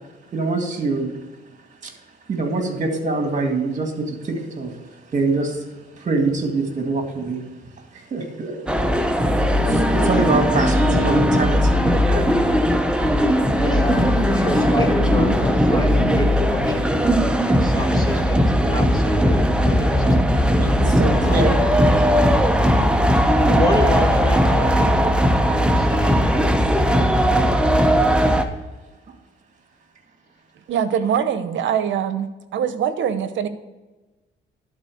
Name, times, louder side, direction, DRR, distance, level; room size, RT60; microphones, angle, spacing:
voice 1, 0.3-1.2 1.8-1.9 2.3-5.6 6.0-7.4 7.9-8.6 9.6-12.3 20.6-21.6 21.8-22.5, right 3 dB, 40° right, 2.1 m, -24 dB
sound 1, 8.7-28.4, equal, 5° right, 0.8 m, -18 dB
voice 2, 13.5-17.0 17.4-20.4 21.1-21.4 23.1-25.0 25.4-26.4, left 1 dB, 20° left, 1.8 m, -29 dB
voice 3, 30.7-33.5, right 8 dB, 70° right, 0.8 m, -23 dB
12.0 x 4.2 x 6.4 m
cardioid pair, 90°, 20 cm